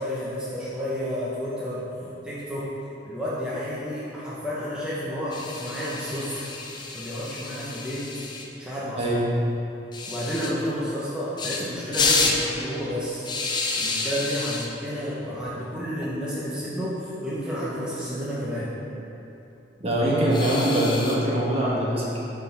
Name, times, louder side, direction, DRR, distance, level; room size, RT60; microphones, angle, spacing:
voice 1, 0.0-2.7 3.0-6.5 6.9-8.0 8.6-9.0 10.1-13.3 13.8-18.7, equal, 5° right, -9 dB, 0.8 m, -31 dB
sound 1, 5.3-8.5 9.9-10.5 11.4-11.6 11.9-12.4 13.3-14.7 15.9-16.1 16.4-16.5 16.8-16.9 18.2-18.7 20.3-21.2, left 3 dB, 25° left, 0.5 m, -29 dB
voice 2, 19.8-22.2, right 1 dB, 35° right, -5 dB, 1.2 m, -23 dB
6.0 x 4.5 x 5.3 m, 3.0 s
head